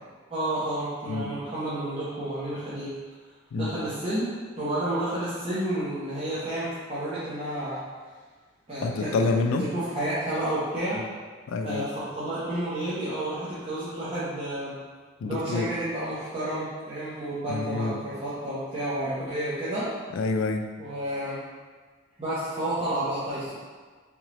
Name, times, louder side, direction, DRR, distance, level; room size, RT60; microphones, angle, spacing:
voice 1, 0.3-2.9 3.5-4.3 4.6-7.8 8.7-9.1 9.7-11.0 11.6-14.8 15.2-19.9 20.8-21.4 22.2-23.5, right 1 dB, 30° right, -13 dB, 0.8 m, -30 dB
voice 2, 8.8-9.7 11.5-11.9 15.2-15.7 17.5-18.0 20.1-20.7, left 3 dB, 85° left, 6 dB, 0.3 m, -27 dB
3.6 x 2.9 x 3.0 m, 1.5 s
head